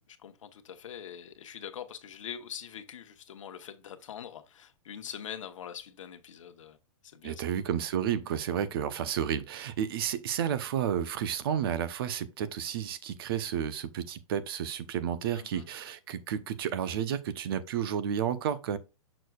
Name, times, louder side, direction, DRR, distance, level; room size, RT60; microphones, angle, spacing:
voice 1, 0.1-6.8 7.0-7.4 15.3-15.7, left 9 dB, 70° left, 1.2 m, -43 dB
voice 2, 7.2-18.8, right 9 dB, 45° right, 0.8 m, -31 dB
6.6 x 6.1 x 2.4 m
hypercardioid pair, 160°, 17 cm